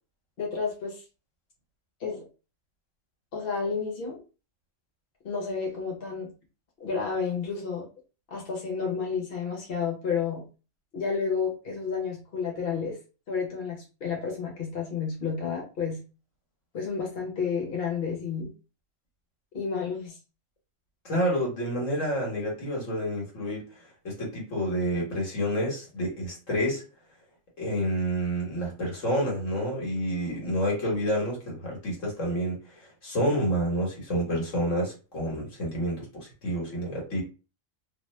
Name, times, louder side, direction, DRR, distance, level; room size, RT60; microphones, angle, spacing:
voice 1, 0.4-1.0 2.0-2.2 3.3-4.2 5.2-6.3 6.8-7.9 8.3-10.4 10.9-13.0 13.3-16.0 16.7-18.5 19.5-20.2, left 5 dB, 50° left, -1 dB, 1.1 m, -31 dB
voice 2, 21.0-23.7 24.0-26.8 27.6-37.2, equal, 80° left, -2 dB, 1.7 m, -29 dB
3.2 x 2.1 x 3.1 m, 0.33 s
omnidirectional pair, 1.3 m